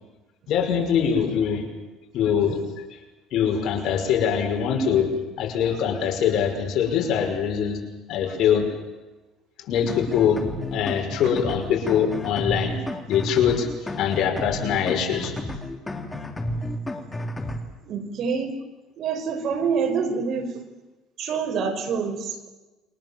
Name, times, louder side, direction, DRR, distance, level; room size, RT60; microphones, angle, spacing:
voice 1, 0.5-1.6 2.1-2.6 2.9-3.0 3.3-5.1 5.4-7.8 8.1-8.7 9.7-10.4 10.7-12.8 13.1-13.7 14.0-15.3, left 8 dB, 60° left, 3 dB, 6.0 m, -23 dB
sound 1, 9.9-17.6, left 1 dB, 10° left, 3.1 m, -32 dB
voice 2, 17.9-18.5 19.0-20.5 21.2-22.5, right 5 dB, 50° right, 5 dB, 5.6 m, -26 dB
29.5 x 24.0 x 7.5 m, 1.1 s
cardioid pair, 125°, 0 cm